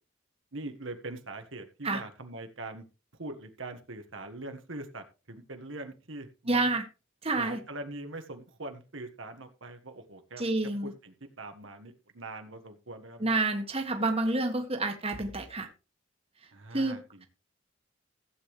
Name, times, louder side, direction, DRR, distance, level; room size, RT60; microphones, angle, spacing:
voice 1, 0.5-2.9 3.2-6.7 7.4-10.4 10.8-13.3 16.5-17.3, right 2 dB, 70° right, 6 dB, 1.6 m, -42 dB
voice 2, 6.5-6.8 7.2-7.6 10.4-10.9 13.2-15.7 16.7-17.0, right 2 dB, 30° right, 4 dB, 1.7 m, -28 dB
15.5 x 8.5 x 3.2 m, 0.31 s
head